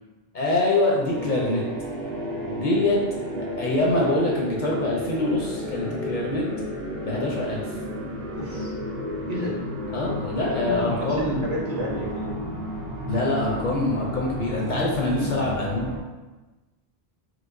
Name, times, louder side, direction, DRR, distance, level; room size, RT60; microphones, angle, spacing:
voice 1, 0.3-1.6 2.6-3.0 3.6-6.5 7.0-7.7 9.9-11.4 13.1-15.9, left 2 dB, 55° left, -2 dB, 0.6 m, -24 dB
sound 1, 1.1-16.0, equal, 70° right, 0.9 m, -32 dB
voice 2, 2.5-2.8 8.3-8.7 9.3-9.6 10.5-12.4, equal, 45° right, -5 dB, 0.7 m, -32 dB
4.6 x 2.1 x 2.5 m, 1.2 s
omnidirectional pair, 1.1 m